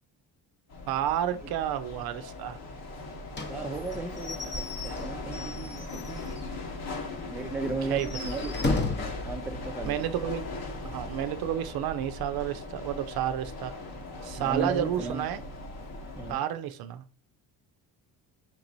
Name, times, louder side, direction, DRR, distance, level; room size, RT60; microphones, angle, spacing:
sound 1, 0.7-16.3, left 2 dB, 65° left, 1.3 m, -39 dB
voice 1, 0.9-2.6 7.9-8.1 9.8-10.5 10.8-13.7 14.2-15.4 16.3-17.0, right 11 dB, 60° right, 10 dB, 0.6 m, -30 dB
Slam / Squeak / Wood, 3.3-6.5 6.9-7.0 7.3-7.4 7.9-9.2, left 3 dB, 25° left, 0.8 m, -34 dB
voice 2, 3.5-6.2 7.3-8.8 9.2-10.1 14.3-15.3 16.2-16.4, right 3 dB, 5° right, 4 dB, 0.4 m, -35 dB
5.9 x 3.0 x 2.6 m, 0.37 s
supercardioid pair, 80°, 41 cm